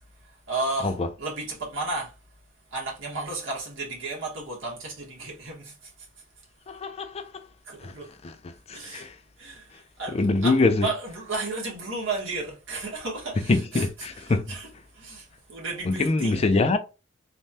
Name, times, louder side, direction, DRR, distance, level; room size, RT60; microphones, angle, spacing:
voice 1, 0.0-2.4 2.7-6.5 7.6-8.1 8.7-9.1 9.4-16.7, right 3 dB, 75° right, 1.3 m, -34 dB
voice 2, 6.7-7.3 7.8-7.9 8.7-9.1 10.1-10.9 13.5-14.5 15.9-16.8, left 3 dB, 30° left, 0.4 m, -23 dB
3.2 x 2.2 x 2.6 m
head